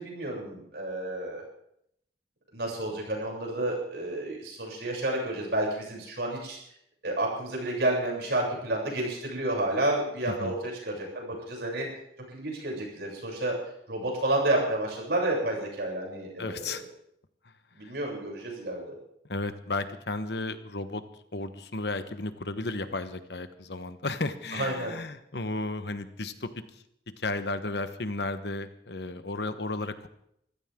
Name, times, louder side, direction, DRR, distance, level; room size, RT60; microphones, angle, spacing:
voice 1, 0.0-1.4 2.5-6.6 7.0-11.9 12.3-13.5 13.9-16.9 17.8-19.0 24.5-24.9, right 1 dB, 70° right, -2 dB, 7.6 m, -30 dB
voice 2, 16.4-16.8 17.8-17.9 19.3-21.0 21.3-26.5 27.2-30.1, left 2 dB, 65° left, 10 dB, 1.2 m, -33 dB
24.0 x 15.5 x 3.8 m, 0.74 s
head